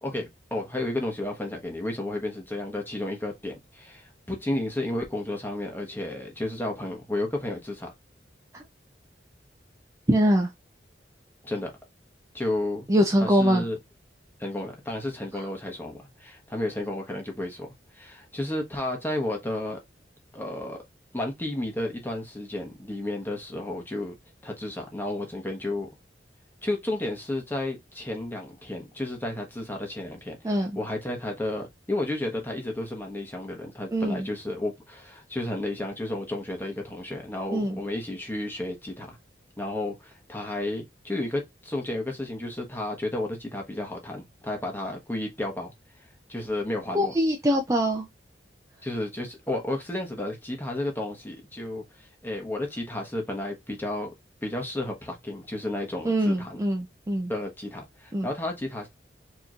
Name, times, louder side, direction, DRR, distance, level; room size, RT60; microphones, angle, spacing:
voice 1, 0.0-7.9 11.4-11.7 12.3-12.8 13.2-13.8 14.4-17.7 17.9-19.8 20.3-20.8 21.1-24.1 24.4-25.9 26.6-39.2 39.6-45.7 46.3-47.1 48.8-54.1 54.4-56.6 57.3-58.9, left 1 dB, 10° left, 1.1 m, -32 dB
voice 2, 10.1-10.5 12.9-13.7 15.3-15.4 30.4-30.8 33.9-34.3 37.5-37.8 46.9-48.1 56.0-57.3 58.1-58.3, equal, 20° right, 0.5 m, -23 dB
4.5 x 3.0 x 2.4 m
head